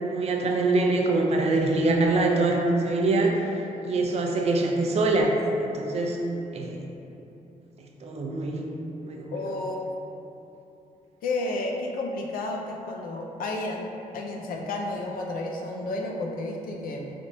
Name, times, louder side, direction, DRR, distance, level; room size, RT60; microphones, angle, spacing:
voice 1, 0.0-3.4 3.8-5.3 5.6-6.3 6.5-6.8 8.0-8.7 9.0-9.4, right 2 dB, 50° right, 1 dB, 0.4 m, -24 dB
voice 2, 9.3-9.9 11.2-13.8 14.1-17.1, left 2 dB, 90° left, 1 dB, 0.5 m, -31 dB
4.1 x 3.4 x 2.6 m, 2.9 s
wide cardioid pair, 160°, 14 cm